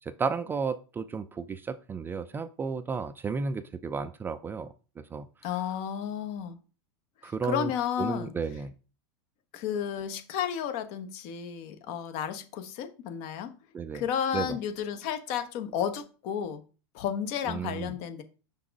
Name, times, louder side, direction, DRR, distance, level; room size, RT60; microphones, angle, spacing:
voice 1, 0.1-5.3 7.2-7.7 8.0-8.7 13.7-14.0 14.3-14.6 17.5-17.9, right 5 dB, 15° right, 0.3 m, -33 dB
voice 2, 5.4-6.6 7.2-8.3 9.5-13.5 13.9-16.6 16.9-18.2, left 8 dB, 50° left, 1.0 m, -32 dB
5.8 x 3.5 x 5.1 m
supercardioid pair, 125°, 14 cm